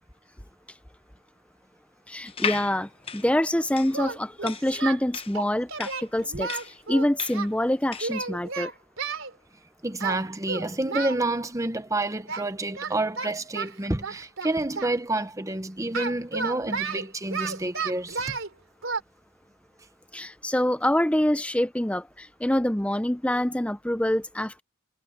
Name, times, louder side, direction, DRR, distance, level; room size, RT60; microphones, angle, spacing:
voice 1, 2.1-6.5 6.9-8.7 20.1-24.6, left 1 dB, 5° left, 0.6 m, -26 dB
sound 1, 2.3-8.2, left 6 dB, 25° left, 0.9 m, -35 dB
Singing, 3.9-5.0 5.3-7.5 8.0-9.3 10.0-10.2 10.5-11.2 12.3-12.5 12.7-14.9 15.9-18.5 18.8-19.0, right 5 dB, 70° right, 3.6 m, -32 dB
voice 2, 9.8-18.4, right 2 dB, 15° right, 1.0 m, -29 dB
head